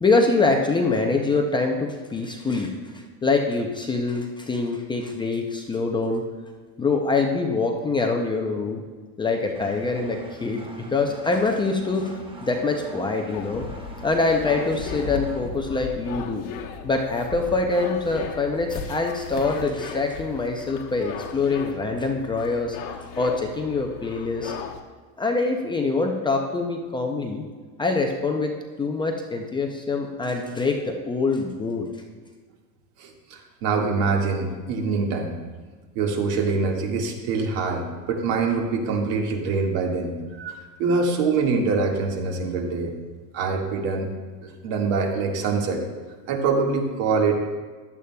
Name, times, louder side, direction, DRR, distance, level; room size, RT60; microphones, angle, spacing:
voice 1, 0.0-6.2 6.8-8.8 9.2-12.1 12.4-13.6 14.0-16.4 16.8-22.8 23.2-24.5 25.2-27.4 27.8-28.5 28.8-31.9, left 3 dB, 10° left, 2 dB, 0.4 m, -24 dB
Engine, 9.5-15.4, right 2 dB, 10° right, 0.8 m, -42 dB
sound 1, 13.3-24.8, left 6 dB, 45° left, 1.1 m, -36 dB
voice 2, 33.0-35.4 36.0-42.9 43.3-44.1 44.4-45.8 46.3-47.3, right 4 dB, 55° right, 1 dB, 1.8 m, -24 dB
15.0 x 11.0 x 2.2 m, 1.5 s
supercardioid pair, 135°, 47 cm